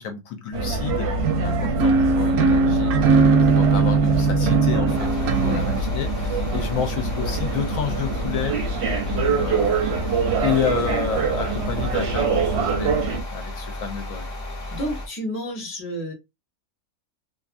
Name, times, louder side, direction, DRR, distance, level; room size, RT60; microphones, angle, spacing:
voice 1, 0.0-8.5 9.1-12.9 13.3-14.3, left 7 dB, 70° left, 1.0 m, -30 dB
sound 1, 0.5-13.2, right 3 dB, 55° right, 0.8 m, -25 dB
sound 2, 1.2-5.8, right 4 dB, 80° right, 1.1 m, -19 dB
sound 3, 4.9-15.1, left 1 dB, 50° left, 0.9 m, -34 dB
voice 2, 14.7-16.1, equal, 15° left, 0.6 m, -30 dB
2.5 x 2.5 x 2.4 m
omnidirectional pair, 1.6 m